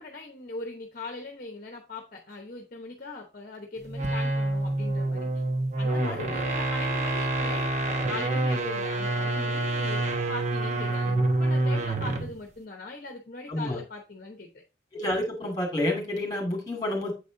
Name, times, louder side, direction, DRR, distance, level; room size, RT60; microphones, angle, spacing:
voice 1, 0.0-5.3 5.8-7.7 8.1-14.5, left 2 dB, 45° left, 3 dB, 0.9 m, -40 dB
sound 1, 3.9-12.4, right 2 dB, 40° right, 0.9 m, -27 dB
voice 2, 14.9-17.1, left 1 dB, 20° left, 1 dB, 2.3 m, -29 dB
8.0 x 4.2 x 3.8 m, 0.29 s
head